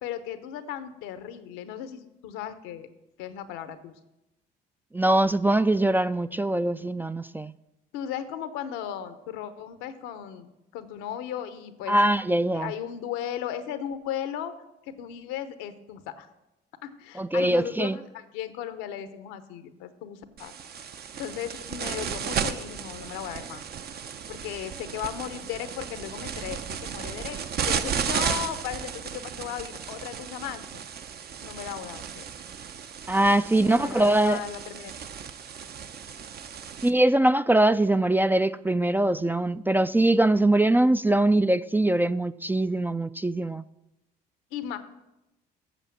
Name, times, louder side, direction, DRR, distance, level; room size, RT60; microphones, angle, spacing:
voice 1, 0.0-2.9 3.2-3.9 7.9-12.0 12.5-14.5 14.8-16.3 16.8-20.5 21.2-23.6 24.3-30.8 31.4-32.2 33.6-34.9 44.5-44.8, left 10 dB, 85° left, 0.9 m, -36 dB
voice 2, 4.9-7.5 11.9-12.7 17.2-17.9 33.1-34.4 36.8-43.6, right 1 dB, 10° right, 0.3 m, -22 dB
sound 1, 20.4-36.9, right 7 dB, 50° right, 0.8 m, -34 dB
8.2 x 6.8 x 7.2 m
supercardioid pair, 65°, 20 cm